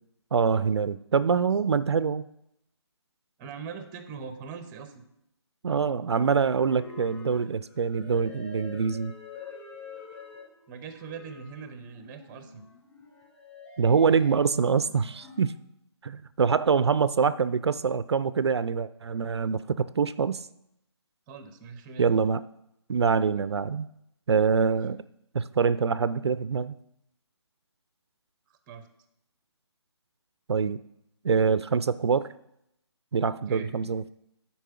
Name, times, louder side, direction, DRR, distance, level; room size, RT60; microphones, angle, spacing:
voice 1, 0.3-2.2 5.6-9.1 13.8-15.6 16.0-20.4 22.0-22.4 22.9-23.9 24.3-25.0 25.3-26.7 30.5-30.8 31.2-32.3 33.1-34.1, right 5 dB, 70° right, 15 dB, 0.4 m, -25 dB
voice 2, 3.4-5.1 10.7-12.7 21.3-22.1 24.6-24.8 28.7-28.9 33.5-33.7, right 6 dB, 15° right, 8 dB, 0.6 m, -41 dB
sound 1, 6.0-15.4, left 5 dB, 15° left, 2.5 m, -47 dB
9.2 x 4.4 x 5.7 m, 0.80 s
figure-of-eight pair, 150°, 15 cm